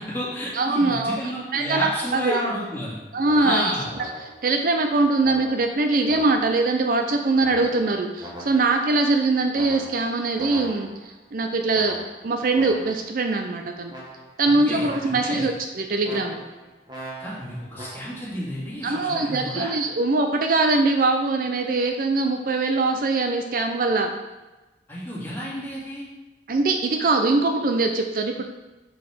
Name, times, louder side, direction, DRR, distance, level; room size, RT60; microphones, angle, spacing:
voice 1, 0.0-3.0 3.4-3.9 14.5-15.5 17.2-19.8 24.9-26.0, equal, 10° left, -8 dB, 2.3 m, -31 dB
voice 2, 0.5-2.4 3.1-3.8 4.4-12.0 12.2-13.9 14.4-16.4 18.8-24.1 26.5-28.4, right 3 dB, 50° right, 4 dB, 0.4 m, -22 dB
sound 1, 3.2-4.5 5.2-6.7 7.4-8.9 9.5-11.1 11.7-13.1 13.9-14.5 14.7-15.5 16.0-18.3 19.1-19.4, right 1 dB, 25° right, 1.4 m, -41 dB
6.3 x 4.7 x 4.9 m, 1.1 s
head